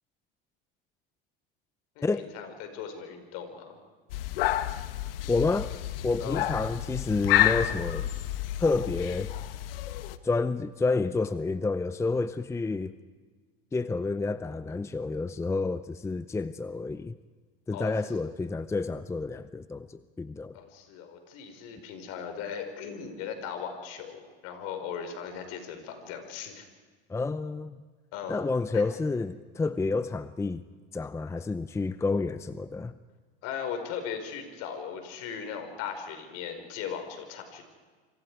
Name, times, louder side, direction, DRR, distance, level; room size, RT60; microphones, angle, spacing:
voice 1, 1.9-3.8 6.2-6.5 17.7-18.2 20.5-26.7 28.1-28.4 28.7-28.9 33.4-37.7, left 7 dB, 60° left, 6 dB, 4.8 m, -38 dB
sound 1, 4.1-10.2, left 13 dB, 75° left, 1.2 m, -29 dB
voice 2, 5.3-5.7 6.0-8.1 8.6-9.3 10.2-12.9 13.7-17.2 17.7-20.5 27.1-27.8 28.3-30.6 30.9-33.0, left 3 dB, 10° left, 14 dB, 0.6 m, -29 dB
26.5 x 26.0 x 4.8 m, 1.5 s
hypercardioid pair, 95°, 29 cm